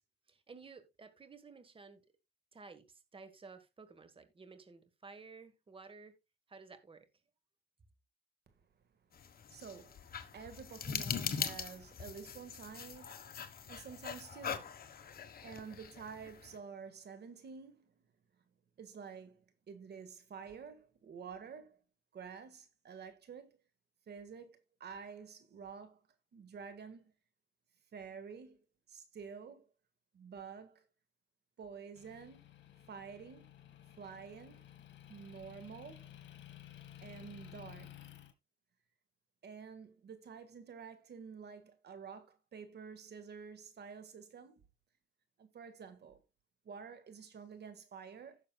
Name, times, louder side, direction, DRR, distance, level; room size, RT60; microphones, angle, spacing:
voice 1, 0.3-2.0 2.5-6.1 6.5-7.1, right 4 dB, 25° right, 1.5 m, -54 dB
sound 1, 9.1-16.6, left 7 dB, 50° left, 1.4 m, -42 dB
voice 2, 9.5-14.9 15.2-17.9 18.8-21.8 22.1-23.6 24.1-26.0 26.3-27.1 27.9-28.6 28.9-29.7 30.1-30.9 31.6-32.5 32.9-33.5 34.0-34.6 35.1-36.1 37.0-37.9 39.4-44.6 45.4-46.2 46.6-48.4, right 6 dB, 55° right, 1.7 m, -50 dB
Motor vehicle (road) / Engine, 32.0-38.3, left 12 dB, 65° left, 2.1 m, -54 dB
16.0 x 6.5 x 2.3 m
cardioid pair, 90°, 20 cm